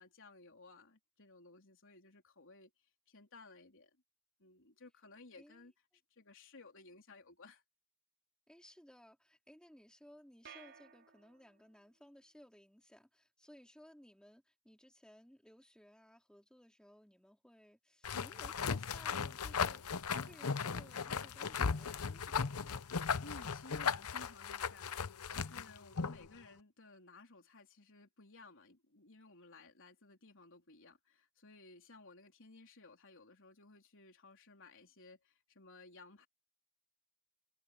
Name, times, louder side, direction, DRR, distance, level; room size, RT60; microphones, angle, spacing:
voice 1, 0.0-4.0 4.4-5.7 6.1-7.6 23.2-36.3, left 3 dB, 60° left, 3.9 m, -58 dB
voice 2, 8.5-22.8, equal, 5° left, 4.0 m, -60 dB
sound 1, 10.5-11.8, right 7 dB, 55° right, 5.8 m, -57 dB
sound 2, 18.0-26.3, left 6 dB, 80° left, 0.8 m, -37 dB
head